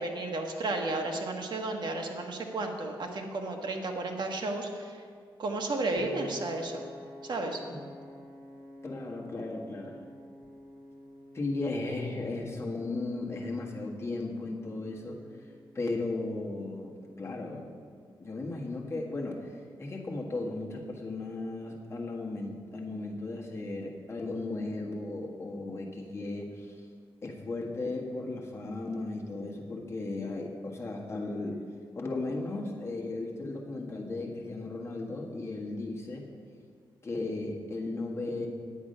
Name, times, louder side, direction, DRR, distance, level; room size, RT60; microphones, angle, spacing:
voice 1, 0.0-5.0 5.4-6.8 7.2-7.6, right 2 dB, 55° right, 2 dB, 1.4 m, -33 dB
Piano, 6.0-18.2, left 2 dB, 25° right, 3.4 m, -50 dB
voice 2, 8.8-10.0 11.3-15.2 15.7-17.7 18.2-19.5 19.8-26.9 27.2-31.6 31.9-36.3 37.0-38.5, left 2 dB, 30° left, -1 dB, 1.6 m, -36 dB
10.0 x 8.6 x 5.5 m, 2.1 s
wide cardioid pair, 110°, 9 cm